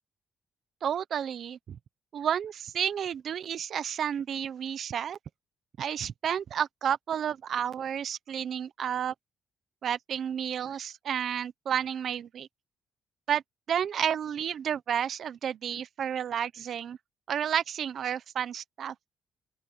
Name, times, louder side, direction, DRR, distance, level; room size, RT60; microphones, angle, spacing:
voice 1, 0.8-1.8 2.1-5.2 5.8-9.1 9.8-12.5 13.3-13.4 13.7-17.0 17.3-18.9, right 9 dB, 60° right, 1.1 m, -31 dB
open air
cardioid pair, 90°, 0 cm